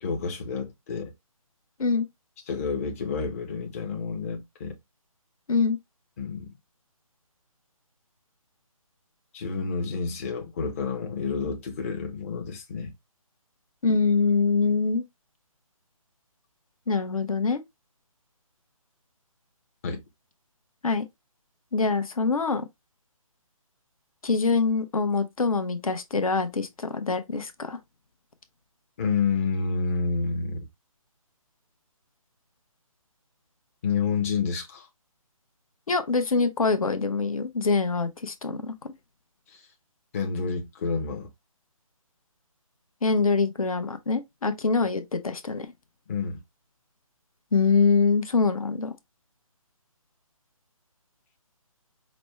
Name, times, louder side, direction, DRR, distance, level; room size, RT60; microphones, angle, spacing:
voice 1, 0.0-1.1 2.5-4.8 6.2-6.5 9.3-12.9 19.8-20.0 29.0-30.7 33.8-34.9 39.5-39.6 40.1-41.3 46.1-46.4, left 5 dB, 25° left, 0.6 m, -29 dB
voice 2, 13.8-15.0 16.9-17.6 20.8-21.1 21.7-22.7 24.2-27.8 35.9-38.9 43.0-45.7 47.5-48.9, left 4 dB, 70° left, 0.8 m, -24 dB
5.1 x 2.1 x 3.0 m
figure-of-eight pair, 150°, 18 cm